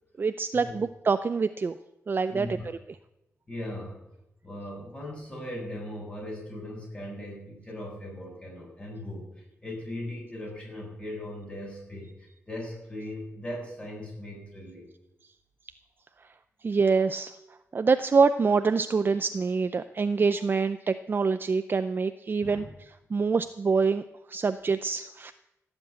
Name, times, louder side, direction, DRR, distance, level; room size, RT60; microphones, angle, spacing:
voice 1, 0.2-1.8 2.1-2.5 16.6-17.3 17.7-22.6 23.1-25.3, right 4 dB, 40° right, 10 dB, 0.5 m, -25 dB
voice 2, 2.3-2.7 3.5-4.0 4.4-14.9 22.4-22.7, left 1 dB, 20° left, -1 dB, 6.6 m, -39 dB
16.0 x 8.0 x 8.7 m, 0.88 s
wide cardioid pair, 105°, 5 cm